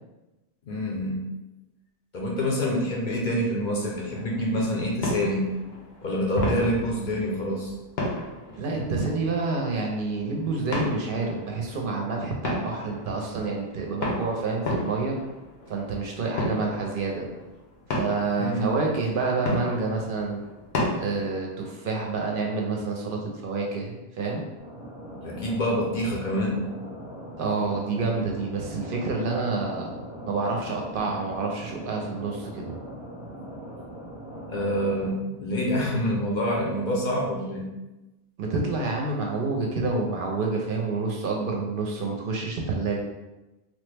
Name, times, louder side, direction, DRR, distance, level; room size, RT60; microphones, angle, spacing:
voice 1, 0.7-1.2 2.1-5.5 6.0-7.7 18.4-18.6 25.2-26.7 34.5-37.7, equal, 55° left, -2 dB, 0.6 m, -26 dB
sound 1, 3.9-21.4, left 1 dB, 80° left, 1.0 m, -34 dB
voice 2, 8.6-15.2 15.7-17.3 17.9-20.4 20.9-24.4 27.4-29.9 30.3-32.7 38.4-43.0, right 3 dB, 65° right, 0 dB, 0.7 m, -28 dB
sound 2, 24.6-35.1, right 1 dB, 5° right, 0.6 m, -40 dB
3.2 x 2.1 x 3.2 m, 1.0 s
omnidirectional pair, 1.0 m